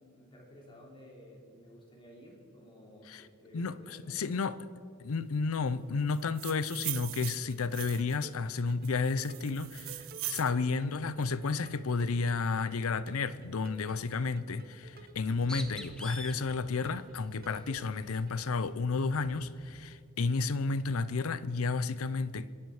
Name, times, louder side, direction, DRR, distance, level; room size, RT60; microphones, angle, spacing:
voice 1, 0.0-4.3, equal, 25° left, -1 dB, 3.0 m, -54 dB
voice 2, 3.5-4.6 5.0-22.5, left 4 dB, 75° left, 16 dB, 0.6 m, -32 dB
sound 1, 6.1-8.2 8.8-10.5, right 19 dB, 65° right, 0.4 m, -40 dB
sound 2, 7.4-18.4, right 2 dB, 45° right, 1.1 m, -54 dB
Bird, 15.1-20.0, equal, 5° left, 0.8 m, -48 dB
25.0 x 10.5 x 4.8 m, 2.3 s
head